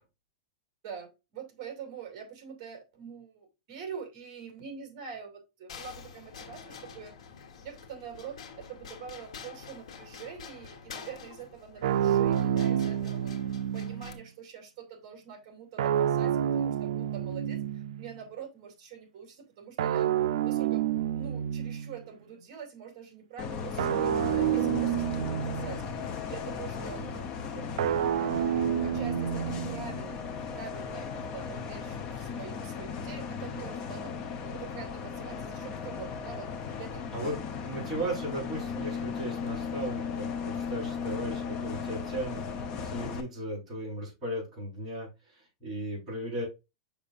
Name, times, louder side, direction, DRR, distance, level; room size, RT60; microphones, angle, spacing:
voice 1, 0.8-7.1 7.6-13.3 13.7-20.1 20.4-20.9 21.1-27.1 27.8-27.9 28.2-34.1 34.4-37.3 37.9-38.0, right 7 dB, 35° right, 4 dB, 2.5 m, -45 dB
sound 1, 5.7-14.2, left 6 dB, 70° left, 1.5 m, -47 dB
sound 2, 11.8-14.2 15.8-18.2 19.8-22.0 23.8-26.1 27.8-30.1, right 10 dB, 75° right, 0.4 m, -29 dB
Bus, 23.4-43.2, left 6 dB, 25° left, 0.7 m, -36 dB
voice 2, 26.8-28.1 37.1-37.4 37.6-46.4, right 1 dB, 10° right, -8 dB, 4.1 m, -37 dB
6.8 x 5.9 x 2.5 m, 0.26 s
supercardioid pair, 180°, 3 cm